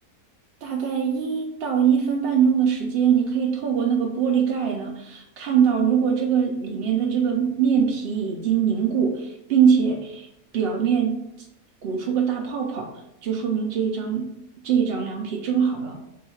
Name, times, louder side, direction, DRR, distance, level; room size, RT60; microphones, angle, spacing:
voice 1, 0.6-10.3 10.5-11.1 11.8-12.9 13.2-14.3 14.6-16.0, right 7 dB, 75° right, 1 dB, 0.5 m, -22 dB
3.6 x 2.3 x 4.1 m, 0.83 s
omnidirectional pair, 1.6 m